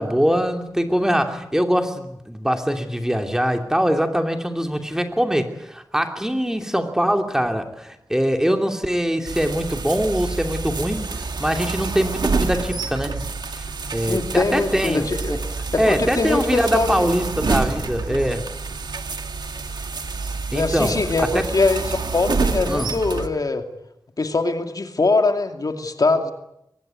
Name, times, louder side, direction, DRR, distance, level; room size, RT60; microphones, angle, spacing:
voice 1, 0.0-11.1 11.4-13.3 13.6-13.7 13.9-15.4 15.8-18.5 20.5-21.4 22.7-22.9, equal, 5° right, 5 dB, 2.9 m, -23 dB
sound 1, 9.3-23.3, right 4 dB, 75° right, 2.1 m, -28 dB
voice 2, 14.1-15.4 15.7-17.1 20.5-23.6 24.2-26.3, left 3 dB, 55° left, 6 dB, 2.6 m, -22 dB
23.5 x 19.5 x 9.6 m, 0.81 s
wide cardioid pair, 70°, 7 cm